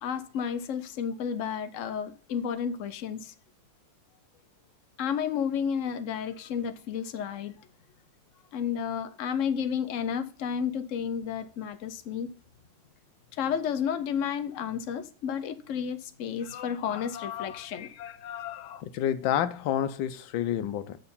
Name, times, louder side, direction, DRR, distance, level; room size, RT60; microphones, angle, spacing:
voice 1, 0.0-3.3 5.0-7.5 8.5-12.3 13.3-18.8, left 7 dB, 55° left, 0.9 m, -32 dB
voice 2, 18.8-21.0, left 10 dB, 80° left, 1.4 m, -29 dB
6.8 x 6.6 x 5.5 m
omnidirectional pair, 2.1 m